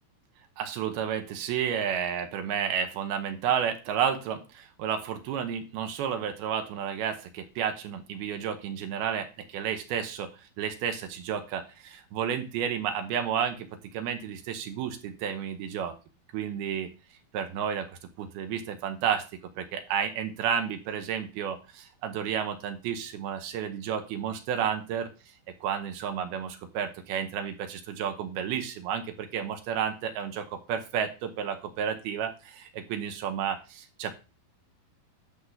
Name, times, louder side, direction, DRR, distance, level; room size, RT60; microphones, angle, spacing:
voice 1, 0.6-13.7 13.9-15.9 16.3-16.9 17.3-19.2 19.6-25.1 25.6-34.1, right 8 dB, 85° right, 6 dB, 2.9 m, -31 dB
10.5 x 3.7 x 6.5 m, 0.30 s
omnidirectional pair, 4.4 m